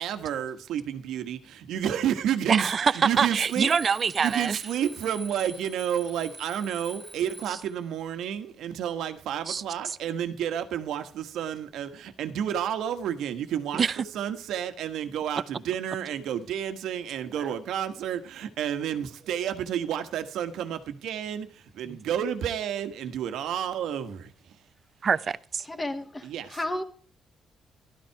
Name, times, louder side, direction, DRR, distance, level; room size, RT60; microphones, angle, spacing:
voice 1, 0.0-3.7 4.2-24.6 26.2-26.6, right 9 dB, 80° right, 1.4 m, -30 dB
voice 2, 2.5-4.6 9.5-9.6 13.7-14.0 25.0-25.6, right 6 dB, 45° right, 0.6 m, -24 dB
Alarm, 3.4-7.8, right 2 dB, 15° right, 1.5 m, -45 dB
voice 3, 25.7-26.8, left 1 dB, 20° left, 2.2 m, -33 dB
13.0 x 12.5 x 4.7 m
cardioid pair, 90°, 0 cm